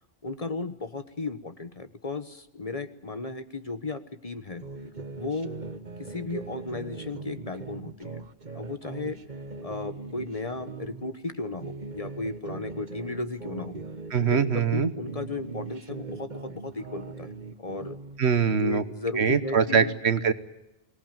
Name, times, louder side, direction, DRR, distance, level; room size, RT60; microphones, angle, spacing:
voice 1, 0.2-4.7 5.2-5.5 6.0-8.3 8.5-9.2 9.6-13.8 14.3-17.3 17.6-18.0 18.5-19.9, left 3 dB, 35° left, 10 dB, 1.2 m, -35 dB
sound 1, 4.6-11.1 11.5-14.8 15.1-18.2, right 3 dB, 45° right, 1.4 m, -40 dB
voice 2, 14.1-14.9 18.2-18.8 19.2-20.3, right 6 dB, 75° right, 12 dB, 1.5 m, -23 dB
24.0 x 18.5 x 9.1 m, 0.91 s
omnidirectional pair, 1.1 m